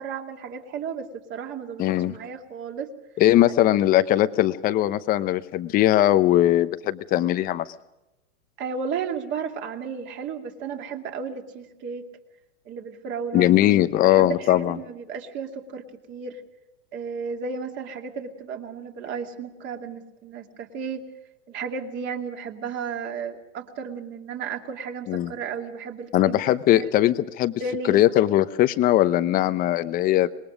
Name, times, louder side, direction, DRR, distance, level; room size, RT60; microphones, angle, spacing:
voice 1, 0.0-2.9 3.6-3.8 8.6-12.1 12.7-13.5 14.0-16.4 16.9-21.0 21.5-26.4 26.7-26.9 27.6-28.0, right 5 dB, 30° right, 3 dB, 2.5 m, -33 dB
voice 2, 1.8-2.1 3.2-7.6 13.3-14.8 25.1-25.3 26.1-27.5 27.8-30.3, left 13 dB, 25° left, 12 dB, 0.9 m, -20 dB
26.0 x 21.5 x 5.2 m, 0.95 s
hypercardioid pair, 150°, 38 cm